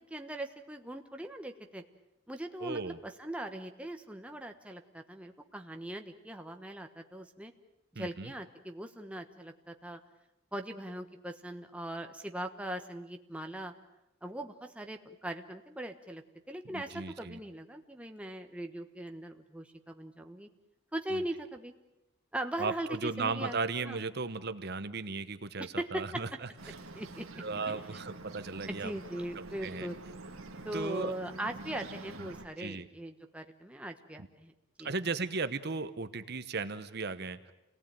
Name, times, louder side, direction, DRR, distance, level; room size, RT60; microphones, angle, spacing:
voice 1, 0.1-1.8 2.3-7.5 7.9-10.0 10.5-13.7 14.2-20.5 20.9-21.7 22.3-23.6 23.8-24.0 25.8-26.2 26.8-27.2 27.9-28.0 28.7-30.0 30.6-34.5 34.8-34.9, right 1 dB, 5° right, 4 dB, 1.2 m, -40 dB
voice 2, 2.6-3.0 7.9-8.3 16.7-17.4 21.1-21.2 22.6-26.3 27.4-28.9 29.6-29.9 30.7-31.1 32.2-32.3 32.6-32.9 34.2-34.3 34.8-37.5, right 4 dB, 50° right, 11 dB, 1.0 m, -36 dB
Bird, 26.6-32.5, right 2 dB, 75° right, 2.1 m, -47 dB
28.0 x 18.5 x 9.1 m, 0.96 s
head